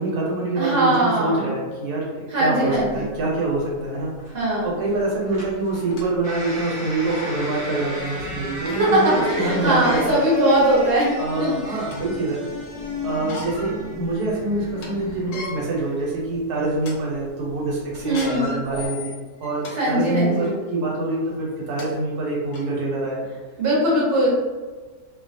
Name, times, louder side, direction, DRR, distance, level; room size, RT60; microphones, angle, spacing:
voice 1, 0.0-10.2 11.2-12.4 13.0-23.3, right 2 dB, 85° right, -4 dB, 1.2 m, -25 dB
voice 2, 0.6-1.5 2.3-3.1 4.3-4.7 8.7-11.1 11.4-11.8 18.0-18.5 19.7-20.5 23.6-24.3, right 1 dB, 45° right, -6 dB, 1.0 m, -20 dB
sound 1, 2.6-18.9, equal, 25° right, 0.7 m, -37 dB
sound 2, 4.9-5.0 5.7-6.1 6.7-6.8 7.1-7.3 8.7-8.8 9.7-10.1 10.9-11.0 11.4-12.1 13.1-13.7 14.1-14.2 14.6-14.9 15.2-15.5 16.2-16.4 16.8-16.9 18.0-19.7 20.4-20.5 21.4-21.5 21.8-21.9 22.5-22.6, left 3 dB, 85° left, 1.1 m, -37 dB
sound 3, 7.9-15.2, left 2 dB, 40° left, 0.4 m, -36 dB
2.7 x 2.2 x 2.6 m, 1.4 s
omnidirectional pair, 1.6 m